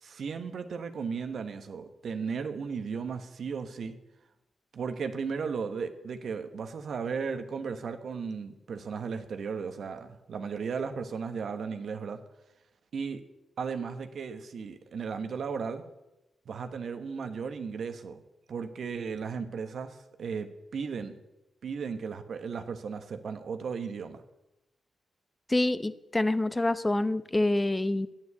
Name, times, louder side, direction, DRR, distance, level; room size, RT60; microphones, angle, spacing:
voice 1, 0.0-4.0 4.7-12.2 12.9-13.2 13.6-15.8 16.4-18.2 18.5-21.2 21.6-24.2, right 5 dB, 70° right, 8 dB, 1.2 m, -35 dB
voice 2, 25.5-28.1, left 2 dB, 25° left, 13 dB, 0.9 m, -26 dB
9.7 x 9.0 x 8.2 m, 0.94 s
supercardioid pair, 45°, 0 cm